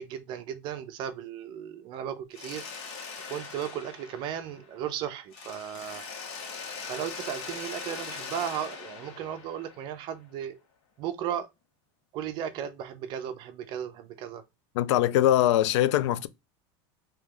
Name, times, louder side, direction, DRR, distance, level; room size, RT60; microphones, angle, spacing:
voice 1, 0.0-2.6 2.9-3.0 3.3-6.0 6.9-10.6 11.0-11.5 12.1-14.4, right 9 dB, 30° right, 0.4 m, -35 dB
Mechanisms, 2.3-4.9 5.3-10.2, left 5 dB, 70° left, 1.4 m, -41 dB
voice 2, 14.8-16.3, left 13 dB, 90° left, 0.4 m, -22 dB
3.2 x 2.8 x 3.6 m
supercardioid pair, 175°, 15 cm